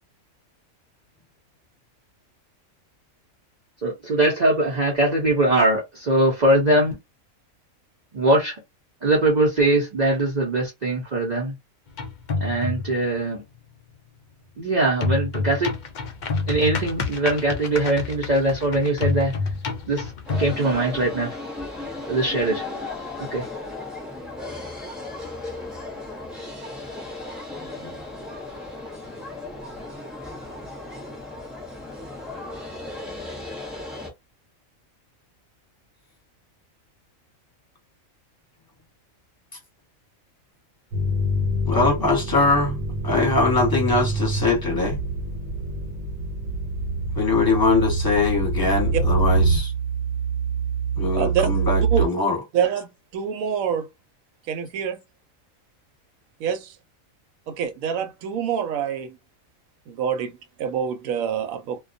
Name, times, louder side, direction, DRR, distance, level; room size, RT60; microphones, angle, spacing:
voice 1, 3.8-7.0 8.1-8.5 9.0-11.5 12.4-13.4 14.6-15.7 16.5-19.3 19.9-20.0 20.4-21.3 22.1-22.6 23.3-23.4, right 1 dB, 45° right, 0.6 m, -21 dB
sound 1, 11.9-13.0 15.0-20.6, left 4 dB, 65° left, 0.4 m, -28 dB
sound 2, 20.2-34.1, left 2 dB, ahead, 0.7 m, -35 dB
sound 3, 40.9-52.1, right 3 dB, 60° right, 1.0 m, -25 dB
voice 2, 41.7-42.8 43.0-45.0 47.2-49.7 51.0-52.4, left 3 dB, 15° left, 1.0 m, -22 dB
voice 3, 51.1-51.5 51.9-52.1 52.5-53.9 54.5-55.0 56.4-56.7 57.5-59.2 59.9-61.8, right 7 dB, 85° right, 1.0 m, -26 dB
2.3 x 2.2 x 2.5 m
omnidirectional pair, 1.4 m